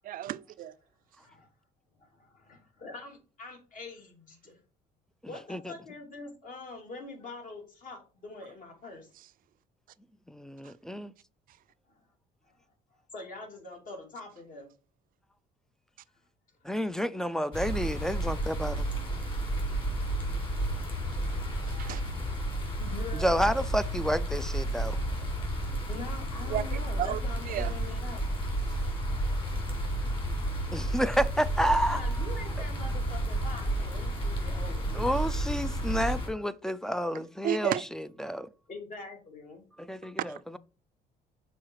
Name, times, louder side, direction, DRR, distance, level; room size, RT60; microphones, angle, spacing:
voice 1, 0.0-0.7 10.6-10.7 21.7-22.0 26.5-27.2 27.5-27.7 28.7-28.8 37.4-37.8 40.3-40.4, right 12 dB, 55° right, 0.4 m, -33 dB
voice 2, 1.2-1.5 2.0-4.6 5.3-9.1 11.9-12.0 12.4-12.6 13.1-14.7 19.4-19.6 21.3-22.0 22.8-23.5 25.6-28.2 31.6-35.1 38.7-39.6, left 3 dB, 50° left, 2.8 m, -44 dB
voice 3, 10.3-11.1 16.6-18.9 23.2-25.0 30.7-32.0 34.9-38.5 39.8-40.6, equal, 5° left, 0.4 m, -30 dB
sound 1, 17.5-36.3, right 1 dB, 30° left, 3.1 m, -31 dB
6.2 x 4.1 x 4.6 m
cardioid pair, 110°, 17 cm